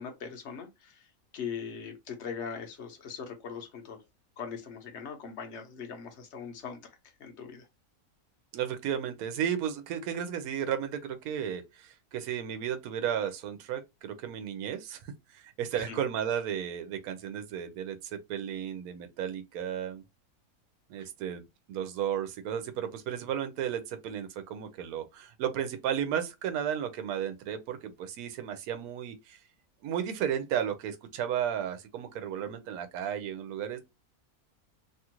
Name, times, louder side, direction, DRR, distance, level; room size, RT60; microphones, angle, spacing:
voice 1, 0.0-4.0 4.4-7.7 15.7-16.0 21.0-21.1, left 6 dB, 55° left, 0.9 m, -41 dB
voice 2, 8.5-20.0 20.9-29.4 29.8-33.8, right 9 dB, 80° right, 1.1 m, -34 dB
2.9 x 2.4 x 2.9 m
omnidirectional pair, 1.6 m